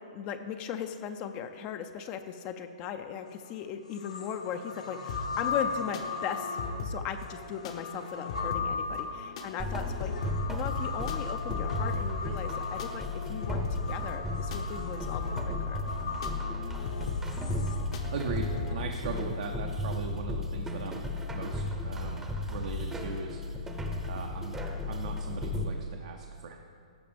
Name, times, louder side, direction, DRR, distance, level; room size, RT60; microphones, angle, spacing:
voice 1, 0.1-15.9, left 8 dB, 30° left, 8 dB, 0.4 m, -38 dB
sound 1, 3.3-3.4 3.9-17.8, left 5 dB, 85° left, 1.2 m, -38 dB
sound 2, 5.1-18.8, left 3 dB, 55° left, 0.8 m, -39 dB
sound 3, 9.6-25.6, left 2 dB, 10° right, 0.7 m, -35 dB
voice 2, 18.1-21.1 21.3-23.7 24.1-24.6 24.9-26.6, right 5 dB, 65° right, 2 dB, 0.7 m, -39 dB
15.0 x 5.0 x 3.4 m, 2.2 s
hypercardioid pair, 125°, 4 cm